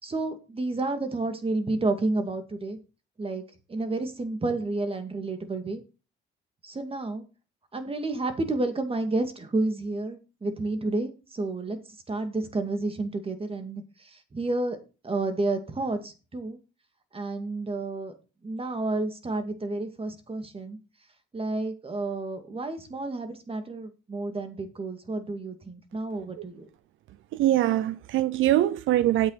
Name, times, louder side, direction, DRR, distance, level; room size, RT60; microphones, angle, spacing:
voice 1, 0.0-2.8 3.2-3.4 3.7-5.8 6.6-7.2 7.7-14.8 15.0-16.6 17.1-18.1 18.4-20.8 21.3-26.6, right 2 dB, 30° right, 2.4 m, -30 dB
voice 2, 27.3-29.3, right 13 dB, 80° right, 0.6 m, -23 dB
9.9 x 8.1 x 4.2 m
cardioid pair, 90°, 20 cm